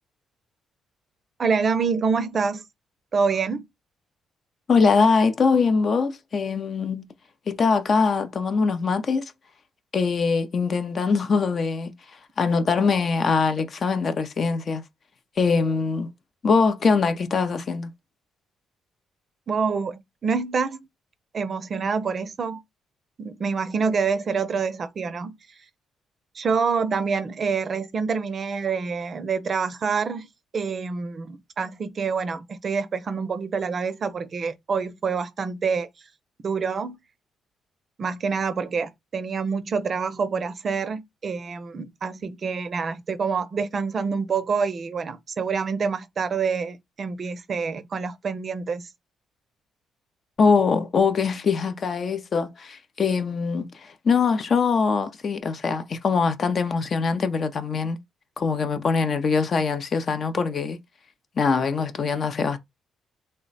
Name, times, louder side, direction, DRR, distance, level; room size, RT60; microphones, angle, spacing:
voice 1, 1.4-2.6 3.1-3.7 19.5-20.9 21.3-22.6 23.2-25.4 26.3-30.3 30.5-35.9 36.4-37.0 38.0-48.9, right 5 dB, 45° right, 0.4 m, -26 dB
voice 2, 4.7-7.1 7.5-9.3 9.9-11.9 12.4-14.8 15.4-16.1 16.4-17.9 50.4-58.0 58.4-60.8 61.4-62.6, left 5 dB, 45° left, 0.5 m, -22 dB
3.2 x 2.1 x 3.9 m
cardioid pair, 90°, 0 cm